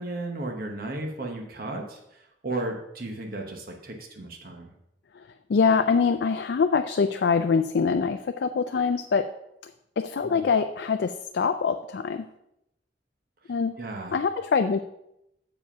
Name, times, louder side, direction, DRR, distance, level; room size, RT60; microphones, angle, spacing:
voice 1, 0.0-4.7 10.2-10.4 13.8-14.2, right 2 dB, 55° right, 1 dB, 1.1 m, -34 dB
voice 2, 5.5-9.3 10.0-12.3 13.5-13.7 14.1-14.8, left 5 dB, 65° left, 8 dB, 0.4 m, -24 dB
7.2 x 5.0 x 5.6 m, 0.83 s
head